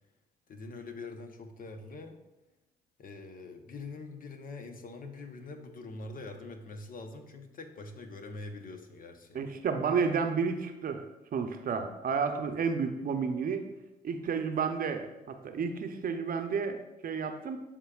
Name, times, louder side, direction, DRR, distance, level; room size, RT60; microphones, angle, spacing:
voice 1, 0.5-2.2 3.0-9.5, left 3 dB, 50° left, 6 dB, 0.9 m, -44 dB
voice 2, 9.3-11.0 11.3-13.7 14.0-16.8 17.0-17.6, right 5 dB, 50° right, 6 dB, 0.7 m, -31 dB
11.0 x 3.8 x 2.4 m, 0.96 s
hypercardioid pair, 55°, 19 cm